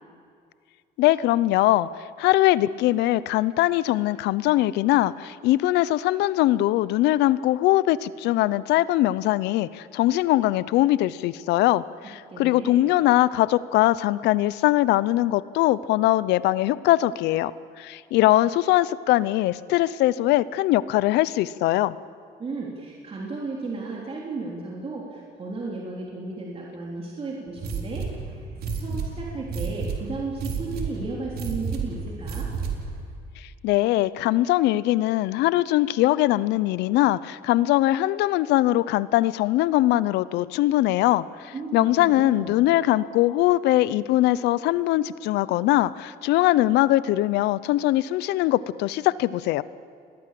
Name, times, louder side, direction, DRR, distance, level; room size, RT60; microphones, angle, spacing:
voice 1, 1.0-1.9 2.2-17.5 17.8-21.9 33.6-49.6, left 15 dB, 85° left, 18 dB, 0.7 m, -21 dB
voice 2, 12.3-12.8 22.4-32.5 41.5-42.6, right 3 dB, 35° right, -3 dB, 3.7 m, -34 dB
sound 1, 27.6-33.0, right 5 dB, 65° right, 3.8 m, -31 dB
28.0 x 21.0 x 7.7 m, 2.2 s
cardioid pair, 110°, 17 cm